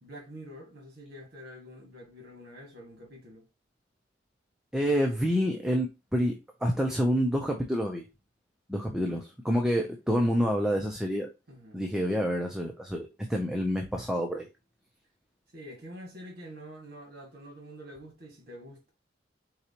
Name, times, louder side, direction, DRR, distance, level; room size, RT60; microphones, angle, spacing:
voice 1, 0.0-3.5 11.5-11.8 15.5-18.9, equal, 55° right, 1.8 m, -46 dB
voice 2, 4.7-8.1 8.7-11.3 11.7-14.5, equal, 5° right, 0.5 m, -28 dB
4.7 x 3.9 x 2.8 m
head